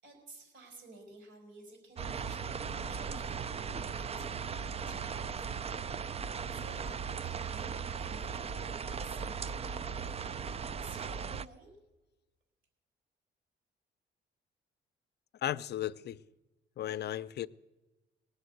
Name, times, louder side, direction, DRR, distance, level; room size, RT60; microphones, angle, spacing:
voice 1, 0.0-5.8 6.5-10.4 10.8-11.7, right 2 dB, 70° right, 4.7 m, -54 dB
sound 1, 2.0-11.5, right 6 dB, 30° right, 0.4 m, -38 dB
voice 2, 15.4-16.2 16.8-17.5, left 12 dB, 55° left, 0.5 m, -35 dB
19.0 x 8.1 x 8.0 m
cardioid pair, 90°, 20 cm